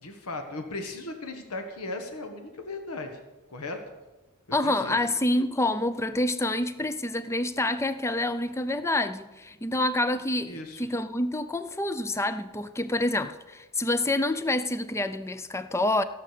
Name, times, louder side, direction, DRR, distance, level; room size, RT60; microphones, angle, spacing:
voice 1, 0.0-3.2 3.5-3.8 4.6-5.0 10.5-10.8, left 2 dB, 90° left, 5 dB, 1.4 m, -37 dB
voice 2, 4.5-16.0, left 1 dB, 10° left, 12 dB, 0.5 m, -27 dB
16.5 x 6.5 x 6.7 m, 1.1 s
head